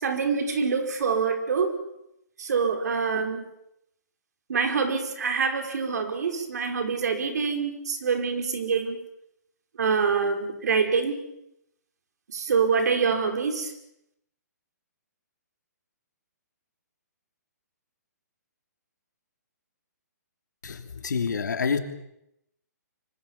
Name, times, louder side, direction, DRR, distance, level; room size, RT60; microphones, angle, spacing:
voice 1, 0.0-1.8 2.4-3.4 4.5-9.0 9.8-11.2 12.3-13.7, right 5 dB, 65° right, 6 dB, 5.0 m, -25 dB
voice 2, 20.6-21.8, left 5 dB, 85° left, 7 dB, 3.2 m, -27 dB
25.5 x 23.5 x 7.3 m, 0.81 s
hypercardioid pair, 160°, 10 cm